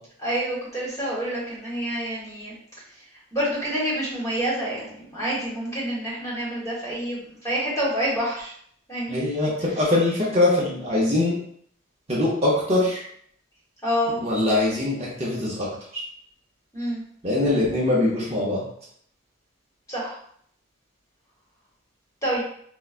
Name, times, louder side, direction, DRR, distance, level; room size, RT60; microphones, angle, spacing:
voice 1, 0.2-2.5 3.3-8.5 8.9-9.3 13.8-14.2 16.7-17.0 19.9-20.2 22.2-22.4, equal, 15° left, -6 dB, 1.1 m, -27 dB
voice 2, 9.1-11.4 12.1-13.0 14.2-15.7 17.2-18.6, left 2 dB, 30° right, -6 dB, 0.7 m, -22 dB
4.6 x 2.1 x 2.4 m, 0.65 s
head